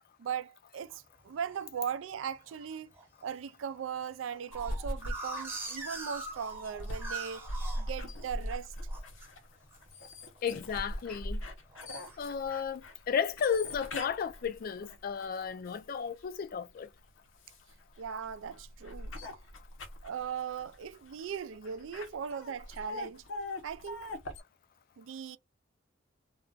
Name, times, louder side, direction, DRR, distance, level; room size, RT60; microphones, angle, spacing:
voice 1, 0.2-2.9 3.2-7.5 7.8-8.7 18.0-19.1 20.0-23.2 23.6-24.1 25.0-25.4, right 7 dB, 80° right, 0.4 m, -38 dB
sound 1, 0.9-1.6 2.2-2.6 3.0-3.1 3.3-3.4 3.7-8.5 8.9-9.3 9.6-10.0 10.3-11.2 11.7-12.2, right 3 dB, 10° right, 0.8 m, -42 dB
sound 2, 4.5-16.2 16.8-24.4, left 1 dB, 80° left, 0.8 m, -41 dB
voice 2, 10.4-11.4 12.2-16.9, left 7 dB, 50° left, 0.3 m, -33 dB
2.4 x 2.1 x 3.8 m
head